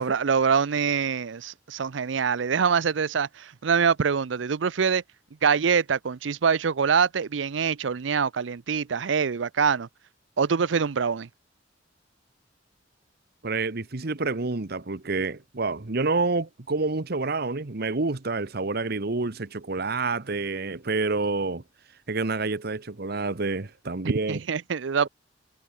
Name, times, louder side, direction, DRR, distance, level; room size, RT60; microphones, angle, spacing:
voice 1, 0.0-5.0 5.4-9.9 10.4-11.3 24.0-25.1, right 6 dB, 85° right, 0.6 m, -24 dB
voice 2, 13.4-21.6 22.1-24.4, right 3 dB, 60° right, 1.1 m, -28 dB
head